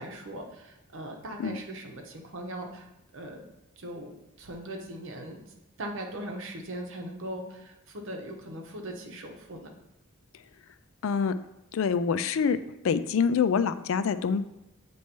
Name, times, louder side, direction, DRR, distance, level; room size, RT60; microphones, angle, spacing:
voice 1, 0.0-2.8 3.1-3.4 3.8-5.4 5.8-9.7, right 1 dB, 60° right, 2 dB, 1.0 m, -39 dB
voice 2, 11.0-11.3 11.7-12.6 12.8-14.4, left 6 dB, 65° left, 12 dB, 0.4 m, -25 dB
8.2 x 3.1 x 4.4 m, 0.90 s
head